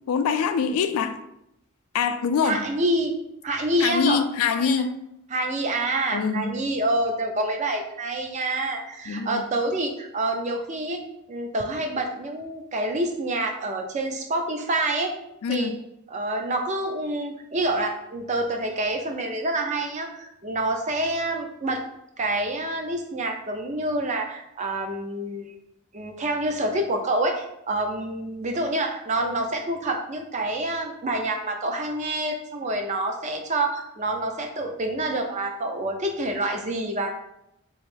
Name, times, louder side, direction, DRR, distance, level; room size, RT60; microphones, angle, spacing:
voice 1, 0.1-1.2 1.9-2.6 3.8-4.9 6.1-6.5 9.1-9.4 15.4-15.8, left 6 dB, 75° left, 10 dB, 0.3 m, -24 dB
voice 2, 2.4-3.1 3.4-4.2 4.6-4.8 5.3-11.0 11.3-15.1 15.5-15.7 16.1-21.8 22.2-25.5 25.9-37.1, right 1 dB, 30° right, 3 dB, 0.4 m, -27 dB
3.3 x 3.1 x 3.2 m, 0.83 s
head